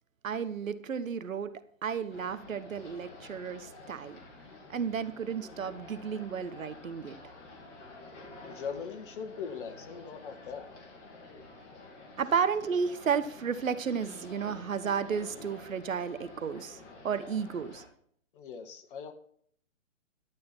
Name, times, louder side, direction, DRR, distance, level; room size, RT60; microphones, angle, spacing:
voice 1, 0.2-1.5 1.8-4.2 4.7-7.2 12.2-16.8 17.0-17.8, right 6 dB, 75° right, 13 dB, 1.1 m, -32 dB
sound 1, 2.1-17.9, left 2 dB, 25° left, 2.6 m, -50 dB
voice 2, 8.4-10.7 18.3-19.1, left 6 dB, 40° left, 6 dB, 1.8 m, -40 dB
12.0 x 8.5 x 4.4 m, 0.62 s
hypercardioid pair, 140°, 40 cm